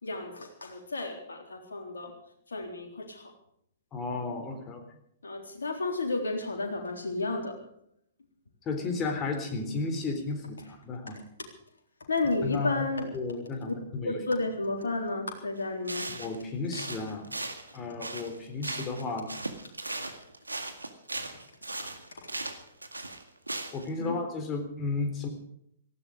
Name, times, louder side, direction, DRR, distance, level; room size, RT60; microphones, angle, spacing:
voice 1, 0.0-2.1 2.5-3.3 5.2-7.5 12.1-13.1 13.7-13.8 14.0-16.1 24.0-24.2, left 2 dB, 70° left, 1 dB, 3.8 m, -32 dB
voice 2, 3.9-4.8 8.7-11.2 12.4-12.8 13.1-14.2 16.1-17.4 17.7-19.4 23.7-25.3, left 3 dB, 25° left, 4 dB, 3.8 m, -33 dB
sound 1, 15.6-15.7 15.9-16.4 16.7-19.0 19.3-23.9, right 2 dB, 80° right, 2.0 m, -37 dB
18.5 x 15.0 x 5.1 m, 0.72 s
figure-of-eight pair, 110°, 0 cm